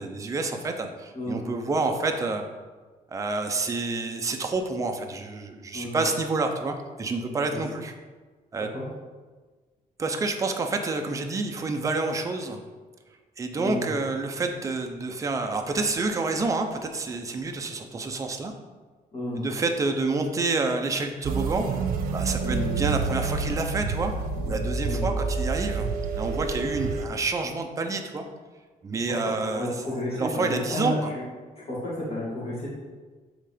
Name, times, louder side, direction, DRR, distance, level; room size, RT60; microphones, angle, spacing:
voice 1, 0.0-2.4 3.1-7.9 8.5-8.7 10.0-12.6 13.4-18.5 19.4-21.7 22.1-25.9 26.2-28.2 28.8-29.7 30.1-31.1, right 3 dB, 20° right, 4 dB, 0.6 m, -28 dB
voice 2, 1.1-1.5 5.7-6.0 7.5-7.6 8.7-8.9 13.5-13.9 19.1-19.5 22.4-22.8 24.8-25.1 29.1-29.2 29.5-31.2 31.6-32.7, left 1 dB, 45° left, -6 dB, 2.1 m, -31 dB
sound 1, 21.2-27.0, right 4 dB, 90° right, 0.8 m, -28 dB
8.0 x 3.7 x 5.0 m, 1.4 s
cardioid pair, 170°, 15 cm